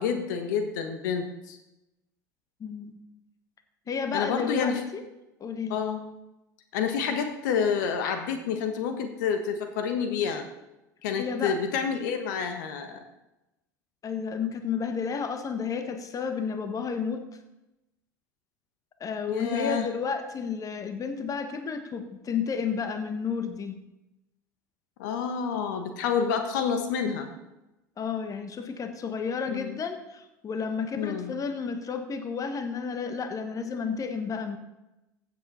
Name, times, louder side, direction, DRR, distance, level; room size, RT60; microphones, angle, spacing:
voice 1, 0.0-1.6 4.1-4.8 5.7-6.0 6.7-10.4 11.0-13.0 19.3-19.9 25.0-27.3 29.5-29.8 31.0-31.3, left 6 dB, 70° left, 6 dB, 1.3 m, -28 dB
voice 2, 2.6-3.0 3.9-5.0 5.4-5.8 11.2-11.6 14.0-17.2 19.0-23.8 28.0-34.6, left 6 dB, 35° left, 8 dB, 1.4 m, -31 dB
15.5 x 7.7 x 4.3 m, 0.94 s
hypercardioid pair, 70°, 10 cm